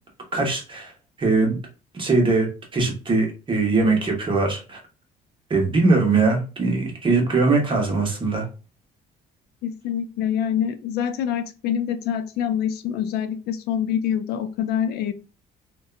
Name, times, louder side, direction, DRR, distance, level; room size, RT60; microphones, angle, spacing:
voice 1, 0.3-0.9 1.2-1.6 1.9-4.8 5.5-8.5, right 3 dB, 30° right, 1 dB, 1.0 m, -21 dB
voice 2, 9.6-15.1, left 9 dB, 70° left, 10 dB, 0.4 m, -25 dB
2.7 x 2.2 x 2.3 m, 0.33 s
cardioid pair, 110°, 17 cm